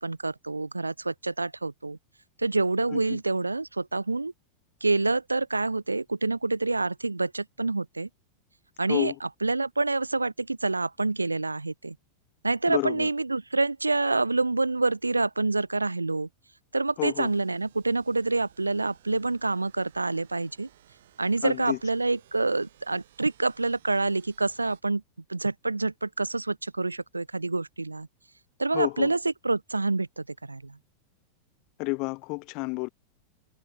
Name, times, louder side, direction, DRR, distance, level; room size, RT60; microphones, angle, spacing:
voice 1, 0.0-2.0 2.4-4.3 4.8-8.1 8.8-12.0 12.4-16.3 16.7-20.7 21.2-25.0 25.3-28.1 28.6-29.2 29.4-30.8, right 3 dB, 80° right, 0.6 m, -27 dB
voice 2, 12.7-13.1 17.0-17.3 21.4-21.8 28.7-29.1 31.8-32.9, left 28 dB, 45° left, 0.3 m, -30 dB
sound 1, 17.1-24.8, right 12 dB, 60° right, 4.9 m, -59 dB
figure-of-eight pair, 90°, 0 cm